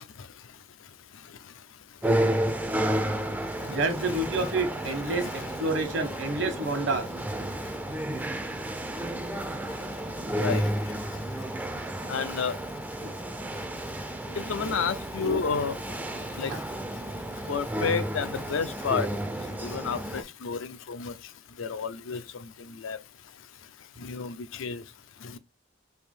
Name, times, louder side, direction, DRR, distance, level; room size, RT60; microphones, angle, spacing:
sound 1, 2.0-20.2, right 1 dB, 10° right, 0.3 m, -32 dB
voice 1, 3.7-7.1 11.1-11.2 13.0-13.1 14.2-14.4 14.6-14.7 15.2-15.4 16.5-16.6, right 2 dB, 70° right, 1.1 m, -29 dB
voice 2, 12.1-12.5 14.5-15.7 16.4-16.5 17.5-19.1 19.6-20.6 20.9-21.1 21.6-22.2 22.8-23.0 24.0-24.8, left 6 dB, 85° left, 0.5 m, -30 dB
3.4 x 2.7 x 4.3 m
head